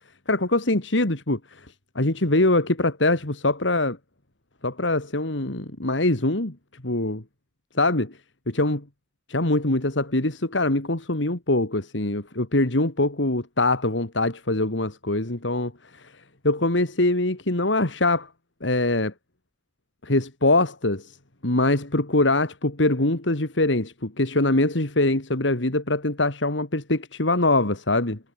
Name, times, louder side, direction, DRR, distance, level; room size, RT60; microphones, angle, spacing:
voice 1, 0.3-1.7 1.9-4.0 4.6-7.2 7.7-8.2 8.5-8.8 9.3-16.1 16.4-18.3 18.6-19.1 20.0-21.2 21.4-28.2, left 2 dB, 75° left, 2.7 m, -23 dB
head